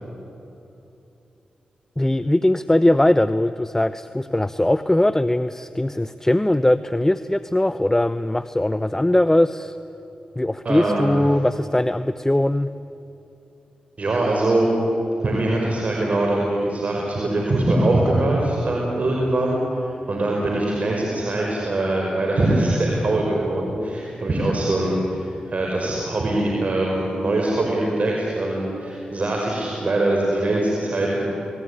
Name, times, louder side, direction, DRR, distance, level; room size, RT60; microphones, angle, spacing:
voice 1, 2.0-9.8 10.4-12.7, left 1 dB, 15° left, 13 dB, 0.8 m, -20 dB
voice 2, 10.6-11.2 14.0-14.7 15.2-31.2, right 2 dB, 55° right, -1 dB, 5.5 m, -22 dB
29.0 x 20.5 x 9.9 m, 2.8 s
supercardioid pair, 45°, 3 cm